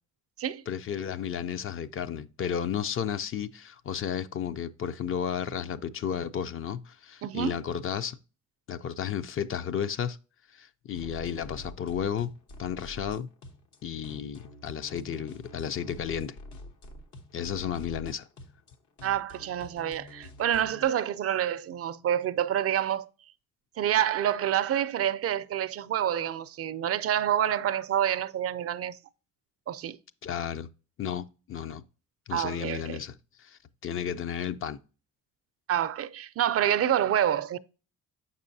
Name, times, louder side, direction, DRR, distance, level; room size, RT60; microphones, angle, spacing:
voice 1, 0.7-8.2 8.7-10.2 10.5-12.3 12.6-13.3 13.8-16.4 17.3-18.3 30.2-30.7 31.0-31.8 32.3-34.8, left 8 dB, 45° left, 0.4 m, -33 dB
voice 2, 7.2-7.6 19.0-23.1 23.8-29.0 29.7-30.0 32.3-33.0 35.7-37.6, right 10 dB, 50° right, 0.4 m, -27 dB
sound 1, 10.9-20.8, left 1 dB, 75° left, 1.0 m, -47 dB
6.8 x 5.4 x 2.6 m
cardioid pair, 90°, 30 cm